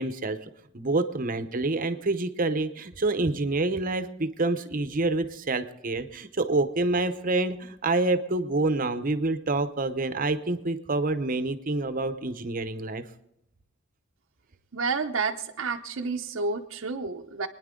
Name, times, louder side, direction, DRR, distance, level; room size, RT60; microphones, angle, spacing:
voice 1, 0.0-13.0, right 2 dB, 40° right, 10 dB, 0.8 m, -27 dB
voice 2, 14.7-17.5, right 4 dB, 70° right, 2 dB, 0.7 m, -30 dB
26.0 x 10.0 x 3.8 m, 0.82 s
head